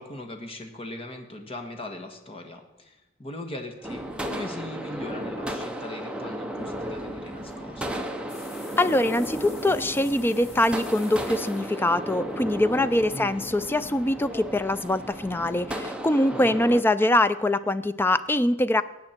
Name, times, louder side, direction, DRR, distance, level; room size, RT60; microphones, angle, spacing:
voice 1, 0.0-8.1 13.0-13.4 16.3-16.5, left 1 dB, 30° left, 4 dB, 1.5 m, -39 dB
sound 1, 3.8-17.8, left 2 dB, 85° left, 3.6 m, -53 dB
sound 2, 3.8-16.8, right 1 dB, 5° right, 0.9 m, -34 dB
sound 3, 8.3-13.2, left 4 dB, 55° left, 2.3 m, -48 dB
voice 2, 8.8-18.8, left 1 dB, 10° left, 14 dB, 0.4 m, -23 dB
19.5 x 8.7 x 4.4 m, 0.98 s
head